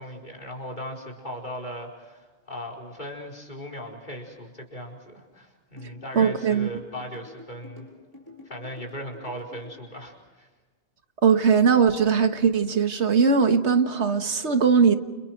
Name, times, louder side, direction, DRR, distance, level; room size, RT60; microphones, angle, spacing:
voice 1, 0.0-7.9 8.4-10.5, equal, 45° left, 5.0 m, -38 dB
sound 1, 5.8-9.7, left 2 dB, 20° left, 6.2 m, -47 dB
voice 2, 6.2-6.7 11.2-14.9, right 6 dB, 85° right, 1.8 m, -20 dB
30.0 x 28.5 x 4.7 m
omnidirectional pair, 1.1 m